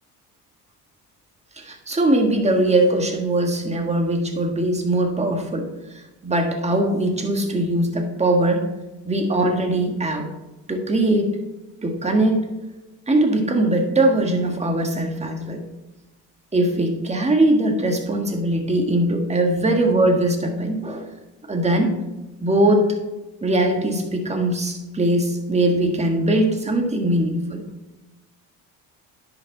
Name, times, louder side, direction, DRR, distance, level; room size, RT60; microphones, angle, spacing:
voice 1, 1.6-5.7 6.2-8.7 9.0-10.2 10.7-11.3 11.8-12.4 13.1-15.6 16.5-21.0 21.5-22.0 22.4-22.9 23.4-27.6, right 1 dB, 20° right, 3 dB, 1.6 m, -21 dB
10.5 x 6.2 x 4.0 m, 1.1 s
cardioid pair, 105°, 36 cm